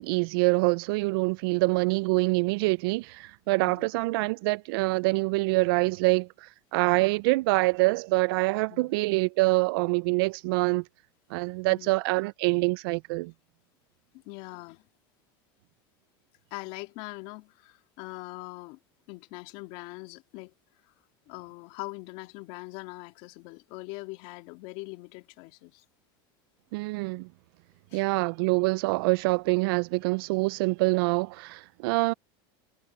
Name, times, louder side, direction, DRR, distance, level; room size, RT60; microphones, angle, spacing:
voice 1, 0.0-10.8 11.3-13.3 26.7-27.3 27.9-32.1, right 26 dB, 70° right, 0.5 m, -25 dB
voice 2, 3.6-3.9 8.7-9.0 11.7-11.9 14.2-14.9 16.5-18.8 19.1-20.5 20.8-20.9 21.3-25.8 27.9-28.0, left 23 dB, 60° left, 2.5 m, -42 dB
supercardioid pair, 125°, 13 cm